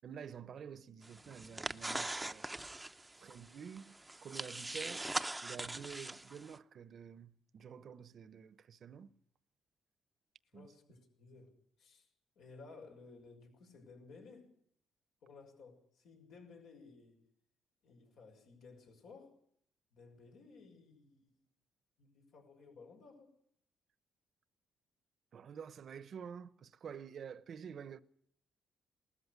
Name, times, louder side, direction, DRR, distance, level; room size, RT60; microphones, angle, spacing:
voice 1, 0.0-2.5 3.2-3.9 4.2-5.1 5.4-9.1 10.5-10.7 25.3-28.0, right 7 dB, 55° right, 0.9 m, -49 dB
sound 1, 1.0-6.6, right 2 dB, 15° right, 0.8 m, -42 dB
voice 2, 10.5-12.1 12.4-14.5 15.2-17.2 17.8-19.4 19.9-21.4 22.0-23.3, left 4 dB, 80° left, 6.2 m, -57 dB
19.5 x 14.0 x 9.7 m
cardioid pair, 90°, 0 cm